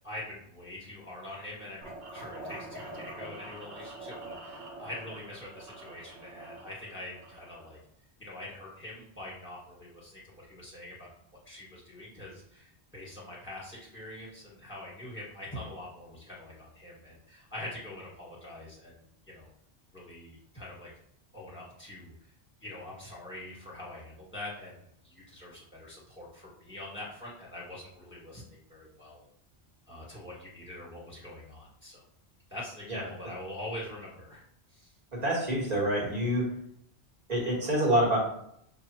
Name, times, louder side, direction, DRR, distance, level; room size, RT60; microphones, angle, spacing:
voice 1, 0.0-7.8 8.2-11.1 11.4-19.5 19.9-20.9 21.3-22.1 22.6-29.3 29.9-32.0 32.5-34.4 34.7-34.9, left 1 dB, 10° left, -7 dB, 1.5 m, -44 dB
sound 1, 1.8-7.8, right 2 dB, 75° right, 1.0 m, -45 dB
voice 2, 35.2-36.5 37.3-38.2, right 1 dB, 40° right, -4 dB, 1.5 m, -26 dB
6.7 x 2.5 x 2.9 m, 0.72 s
omnidirectional pair, 1.1 m